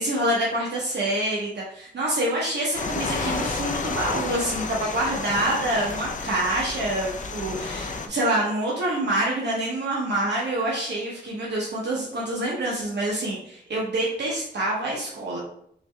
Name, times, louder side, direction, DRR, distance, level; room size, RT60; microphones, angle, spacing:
voice 1, 0.0-15.4, right 1 dB, 70° right, -5 dB, 1.0 m, -26 dB
sound 1, 2.7-8.1, left 4 dB, 45° left, 0.4 m, -31 dB
3.8 x 3.1 x 3.3 m, 0.67 s
wide cardioid pair, 130°, 18 cm